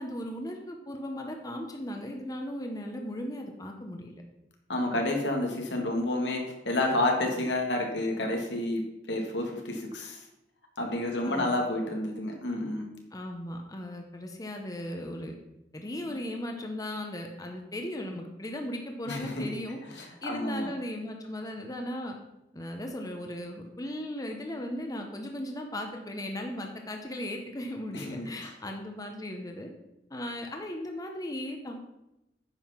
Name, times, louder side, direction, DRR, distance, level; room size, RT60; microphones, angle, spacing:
voice 1, 0.0-4.2 11.2-11.6 13.1-15.3 15.7-22.2 22.5-29.7 30.1-31.8, left 1 dB, 20° left, 3 dB, 0.9 m, -37 dB
voice 2, 4.7-8.8 9.1-10.2 10.8-12.9 16.1-16.2 19.1-19.5 20.0-20.7 27.9-28.3, left 1 dB, 80° left, 2 dB, 1.9 m, -30 dB
9.1 x 5.6 x 5.7 m, 0.89 s
head